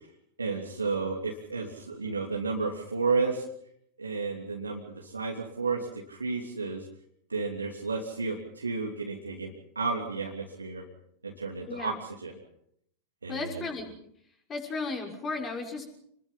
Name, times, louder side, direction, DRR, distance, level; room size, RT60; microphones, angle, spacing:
voice 1, 0.4-3.4 4.0-6.9 7.3-10.8 11.2-12.3 13.2-13.7, right 4 dB, 75° right, -1 dB, 3.0 m, -32 dB
voice 2, 13.3-13.9 14.5-15.9, left 3 dB, 25° left, 2 dB, 6.2 m, -34 dB
28.5 x 21.5 x 5.8 m, 0.70 s
figure-of-eight pair, 90°, 0 cm